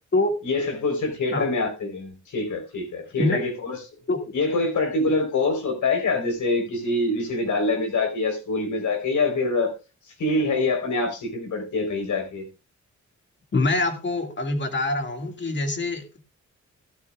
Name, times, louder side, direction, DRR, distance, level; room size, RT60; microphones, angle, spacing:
voice 1, 0.4-3.8 4.3-9.7 10.2-12.5, left 3 dB, 80° left, 3 dB, 4.1 m, -25 dB
voice 2, 13.5-16.2, left 2 dB, 40° left, 5 dB, 2.2 m, -24 dB
15.0 x 12.0 x 2.4 m, 0.29 s
wide cardioid pair, 120°, 30 cm